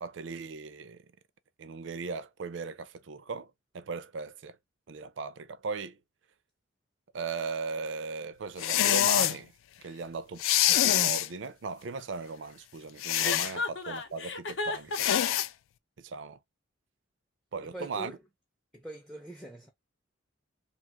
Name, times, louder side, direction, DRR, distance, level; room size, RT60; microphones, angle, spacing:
voice 1, 0.0-1.1 1.6-4.6 4.9-6.0 7.1-9.5 9.8-15.1 16.0-16.4 17.5-18.1, right 4 dB, 65° right, 0.4 m, -38 dB
sound 1, 8.6-9.4 10.4-11.3 13.0-13.5 14.9-15.5, left 12 dB, 85° left, 0.3 m, -25 dB
Chuckle chortle, 13.2-15.4, left 3 dB, 65° left, 0.7 m, -33 dB
voice 2, 17.6-18.2 18.7-19.7, right 1 dB, ahead, 0.4 m, -43 dB
2.8 x 2.4 x 2.8 m
head